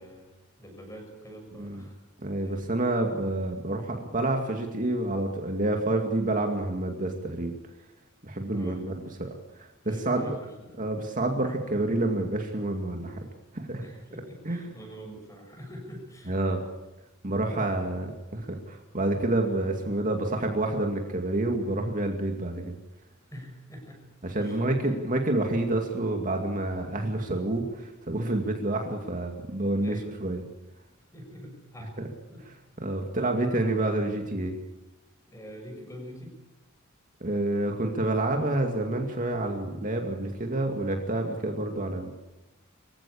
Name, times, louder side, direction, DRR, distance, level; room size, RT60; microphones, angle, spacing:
voice 1, 0.0-2.0 2.4-2.7 8.5-8.9 9.8-10.4 10.7-10.8 13.8-16.4 17.6-17.8 23.3-24.0 24.4-24.8 29.8-30.2 31.1-32.0 32.3-32.5 35.3-36.4, equal, 15° left, 2 dB, 6.9 m, -45 dB
voice 2, 1.5-1.8 2.2-7.5 8.2-10.3 10.8-13.2 13.5-13.9 14.4-14.7 16.3-16.6 17.2-22.8 24.2-30.4 32.4-34.6 37.2-42.1, right 2 dB, 40° right, 3 dB, 2.4 m, -28 dB
24.5 x 15.5 x 8.7 m, 1.0 s
head